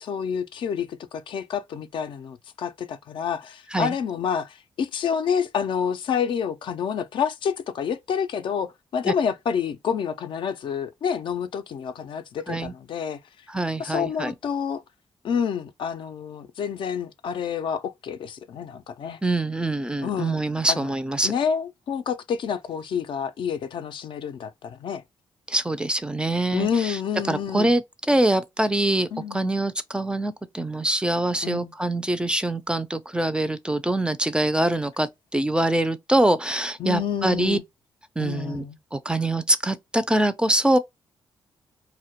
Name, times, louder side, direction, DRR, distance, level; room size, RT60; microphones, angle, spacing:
voice 1, 0.0-13.2 13.8-14.8 15.2-19.2 20.0-20.4 20.7-20.9 21.2-25.0 26.5-27.7 29.1-29.5 31.4-31.7 36.8-37.6 38.2-38.8, left 7 dB, 65° left, 0.3 m, -28 dB
voice 2, 13.5-14.3 19.2-21.3 25.5-27.0 27.3-27.8 28.1-37.6 38.2-38.6 38.9-40.8, right 1 dB, 10° right, 0.3 m, -24 dB
2.1 x 2.1 x 2.8 m
cardioid pair, 70°, 9 cm